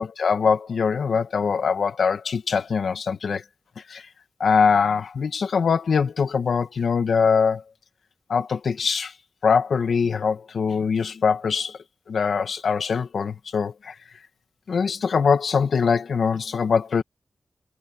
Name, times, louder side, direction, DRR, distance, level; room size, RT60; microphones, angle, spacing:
voice 1, 0.0-3.4 3.9-4.0 4.4-7.6 8.3-9.1 9.4-11.8 12.1-13.9 14.7-17.0, left 5 dB, 80° left, 2.1 m, -22 dB
wide cardioid pair, 120°, 0 cm